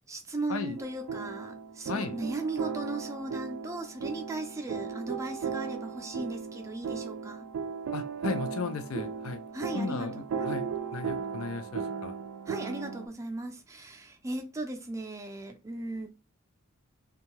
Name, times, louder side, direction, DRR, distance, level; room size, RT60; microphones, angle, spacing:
voice 1, 0.1-7.5 9.5-10.6 12.5-16.1, right 2 dB, 15° right, 0.5 m, -37 dB
sound 1, 0.8-13.1, right 6 dB, 85° right, 0.3 m, -36 dB
voice 2, 7.9-9.4 9.7-12.1, left 4 dB, 85° left, 0.5 m, -35 dB
2.7 x 2.3 x 2.9 m
head